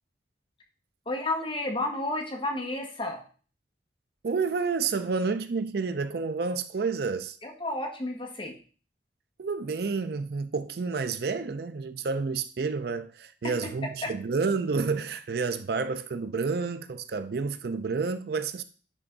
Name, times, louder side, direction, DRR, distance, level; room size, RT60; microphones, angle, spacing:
voice 1, 1.1-3.2 7.4-8.5 14.0-14.1, left 2 dB, 30° left, 1.2 m, -31 dB
voice 2, 4.2-7.4 9.4-18.6, right 4 dB, 60° right, 0.4 m, -29 dB
9.9 x 3.5 x 3.8 m
head